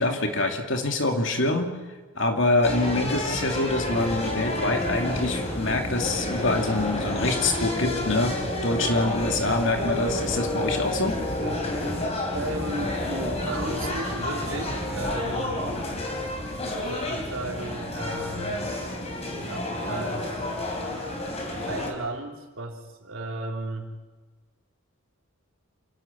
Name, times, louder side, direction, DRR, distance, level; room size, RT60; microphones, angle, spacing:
voice 1, 0.0-1.7 2.1-11.2, left 2 dB, 60° left, 4 dB, 2.6 m, -25 dB
sound 1, 2.6-21.9, left 1 dB, 30° left, 3.8 m, -30 dB
voice 2, 8.8-9.1 11.4-15.6 16.3-16.4 16.9-18.6 19.4-20.5 21.7-23.9, right 2 dB, 65° right, 2 dB, 3.1 m, -35 dB
28.0 x 11.5 x 8.4 m, 1.3 s
head